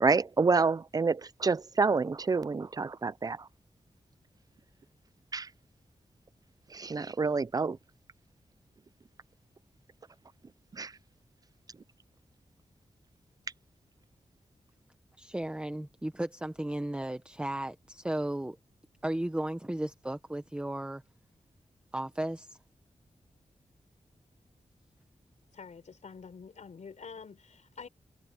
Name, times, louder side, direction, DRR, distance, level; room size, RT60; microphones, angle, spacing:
voice 1, 0.0-3.4 5.3-5.5 6.7-7.8 10.8-10.9, right 4 dB, 30° right, 0.4 m, -28 dB
voice 2, 15.2-18.6 19.0-21.0 21.9-22.6, right 1 dB, 10° right, 0.9 m, -35 dB
voice 3, 25.5-27.9, left 5 dB, 70° left, 4.6 m, -47 dB
wide cardioid pair, 145°, 13 cm